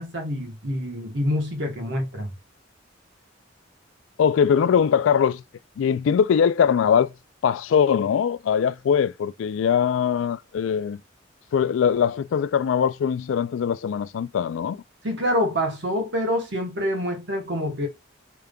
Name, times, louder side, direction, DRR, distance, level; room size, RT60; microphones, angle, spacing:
voice 1, 0.0-2.3 15.0-17.9, equal, 60° right, 1.2 m, -26 dB
voice 2, 4.2-5.4 5.8-7.1 7.4-11.0 11.5-14.8, left 7 dB, 75° left, 0.3 m, -21 dB
5.1 x 3.4 x 2.3 m
head